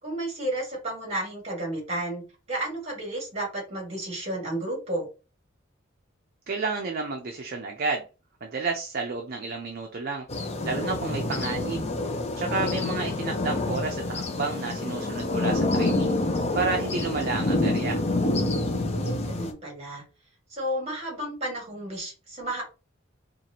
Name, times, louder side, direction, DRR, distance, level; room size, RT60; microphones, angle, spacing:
voice 1, 0.0-5.1 18.9-20.0 20.5-22.7, right 1 dB, 30° right, -1 dB, 1.8 m, -32 dB
voice 2, 6.5-8.0 8.4-10.3 10.6-11.9 12.3-16.1 16.5-18.0, right 4 dB, 45° right, 2 dB, 0.5 m, -31 dB
sound 1, 10.3-19.5, left 2 dB, 30° left, 0.5 m, -27 dB
4.4 x 2.5 x 2.8 m, 0.32 s
head